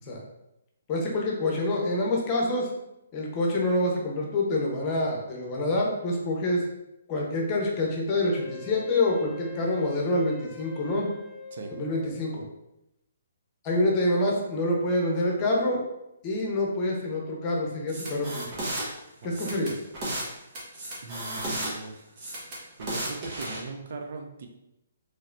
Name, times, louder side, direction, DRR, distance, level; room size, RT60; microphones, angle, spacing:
voice 1, 0.9-2.7 3.1-6.6 7.1-11.1 11.7-12.4 13.6-15.8 16.2-18.7 19.2-19.7, left 1 dB, 30° left, -1 dB, 1.0 m, -26 dB
Wind instrument woodwind instrument, 8.2-12.5, left 4 dB, 5° left, 0.4 m, -44 dB
sound 1, 17.9-18.9 19.3-20.3 20.6-21.7 22.2-23.6, right 1 dB, 35° right, 1.3 m, -33 dB
voice 2, 19.2-19.6 21.0-22.0 22.8-24.5, right 3 dB, 55° right, 4 dB, 0.5 m, -39 dB
3.9 x 3.2 x 2.6 m, 0.88 s
figure-of-eight pair, 135°, 0 cm